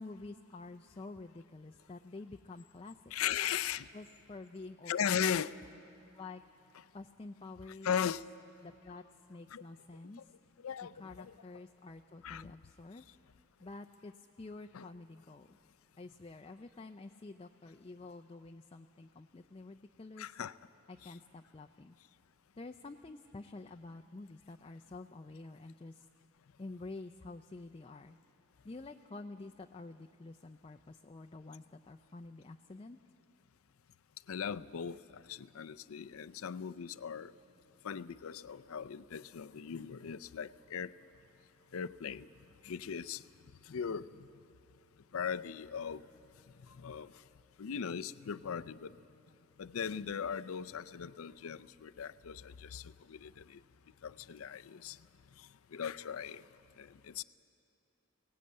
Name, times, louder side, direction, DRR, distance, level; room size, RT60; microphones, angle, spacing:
voice 1, 0.0-3.0 3.9-5.4 6.1-6.4 6.9-7.9 8.6-9.0 9.3-10.3 10.9-13.0 13.6-15.6 16.0-20.3 20.9-22.0 22.6-26.1 26.6-28.2 28.6-33.0, left 3 dB, 25° left, 6 dB, 0.4 m, -49 dB
voice 2, 3.1-3.9 4.9-5.6 7.8-8.2 9.5-9.6 10.6-11.3 12.2-12.5 14.7-14.9 20.2-20.5 21.0-21.1 34.3-37.3 37.8-40.9 41.7-42.3 42.6-43.2 43.7-44.1 45.1-46.0 46.8-47.1 47.6-48.9 49.6-53.6 54.0-55.0 55.4-56.4 56.8-57.2, left 7 dB, 80° left, 15 dB, 0.5 m, -38 dB
23.5 x 18.0 x 8.6 m, 2.9 s
head